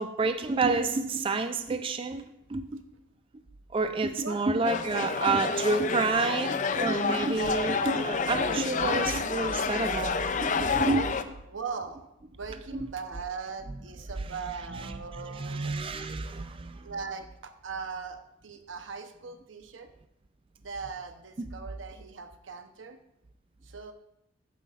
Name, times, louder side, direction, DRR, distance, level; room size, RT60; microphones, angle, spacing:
voice 1, 0.0-2.2 2.5-2.8 3.7-11.1 15.2-16.8, right 3 dB, 30° right, 8 dB, 0.4 m, -29 dB
sound 1, 4.6-11.2, left 5 dB, 40° left, 0.5 m, -29 dB
voice 2, 11.5-15.9 16.8-19.9 20.6-23.0 23.6-23.9, right 5 dB, 85° right, 7 dB, 0.8 m, -40 dB
11.0 x 9.3 x 2.5 m, 0.81 s
head